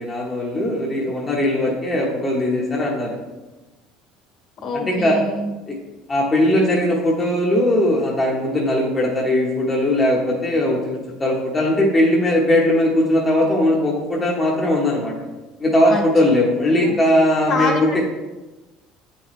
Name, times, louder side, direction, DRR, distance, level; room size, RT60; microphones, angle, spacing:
voice 1, 0.0-3.2 4.7-5.2 5.7-5.8 6.1-15.1 15.6-17.9, left 1 dB, 20° left, -2 dB, 0.9 m, -19 dB
voice 2, 4.6-5.5 15.9-16.1 16.8-17.0 17.5-18.0, left 3 dB, 50° left, 1 dB, 1.4 m, -25 dB
8.4 x 4.2 x 3.1 m, 1.1 s
cardioid pair, 125°, 0 cm